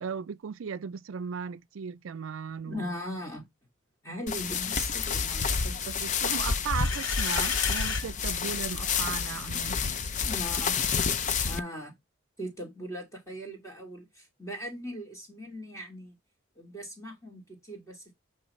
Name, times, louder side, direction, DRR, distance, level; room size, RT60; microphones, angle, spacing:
voice 1, 0.0-2.9 5.9-9.8, right 6 dB, 80° right, 0.4 m, -36 dB
voice 2, 2.6-3.4 4.0-5.8 10.2-10.8 11.3-11.9 12.4-16.1 16.6-18.1, equal, 15° left, 2.5 m, -39 dB
sound 1, 4.3-11.6, left 6 dB, 35° left, 0.4 m, -29 dB
sound 2, 6.5-8.1, left 6 dB, 80° left, 1.0 m, -33 dB
8.5 x 3.2 x 4.3 m
head